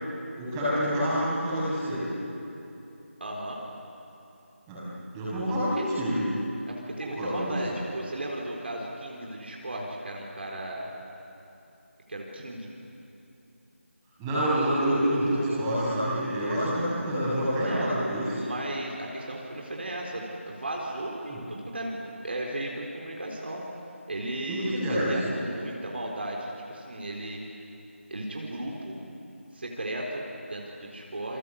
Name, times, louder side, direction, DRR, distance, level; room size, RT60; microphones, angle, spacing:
voice 1, 0.4-2.0 4.7-4.8 5.1-6.3 7.0-7.6 14.2-18.3 21.3-21.4 24.5-25.3, equal, 10° right, -10 dB, 6.7 m, -27 dB
voice 2, 3.2-3.6 5.4-5.9 6.7-10.9 12.1-12.7 17.6-17.9 18.4-23.6 24.1-27.4 28.1-29.0 29.5-31.4, right 1 dB, 50° right, -1 dB, 4.2 m, -35 dB
28.5 x 25.5 x 8.3 m, 2.9 s
figure-of-eight pair, 170°, 7 cm